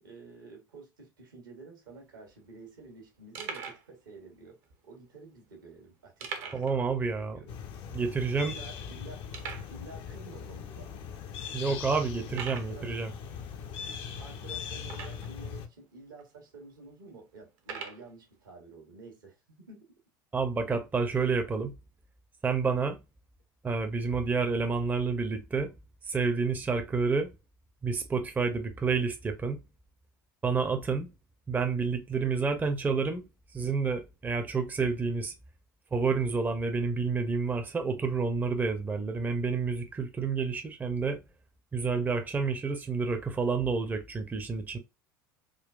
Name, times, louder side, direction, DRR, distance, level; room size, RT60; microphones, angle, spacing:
voice 1, 0.0-7.5 8.4-9.2 9.7-11.1 11.4-11.8 12.3-12.8 13.9-19.8, right 3 dB, 80° right, 1.1 m, -50 dB
sound 1, 1.9-2.3 2.8-2.9 3.4-3.9 4.6-4.7 6.2-6.8 7.1-7.2 7.6-7.7 8.3-8.4 9.3-9.8 10.6-10.7 11.2-11.3 12.3-12.8 14.8-15.4 16.2-16.3 17.6-18.0, right 6 dB, 60° right, 0.7 m, -40 dB
voice 2, 6.5-7.4 7.9-8.6 11.5-13.1 20.3-21.7 22.4-23.0 23.6-25.7 26.1-27.3 27.8-29.6 30.4-31.1 31.5-33.2 33.5-35.3 35.9-41.2 41.7-44.8, right 4 dB, 15° right, 0.5 m, -29 dB
sound 2, 7.5-15.7, left 7 dB, 50° left, 0.5 m, -40 dB
3.7 x 2.2 x 2.3 m
figure-of-eight pair, 70°, 11 cm